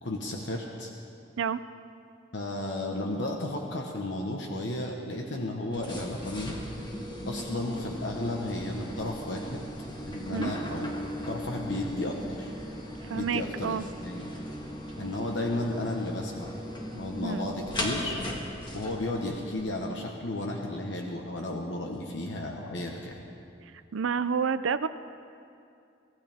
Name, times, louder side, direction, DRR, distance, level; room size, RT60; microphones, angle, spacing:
voice 1, 0.0-0.9 2.3-6.6 7.3-9.6 10.1-10.9 11.2-12.5 13.1-14.3 15.0-16.6 16.9-18.2 18.7-23.2, left 1 dB, 65° left, 1 dB, 1.2 m, -33 dB
sound 1, 5.7-19.6, equal, 25° left, 1.8 m, -38 dB
voice 2, 13.1-13.8 17.2-17.5 23.9-24.9, right 6 dB, 85° right, 12 dB, 0.5 m, -29 dB
24.0 x 16.0 x 3.6 m, 2.5 s
head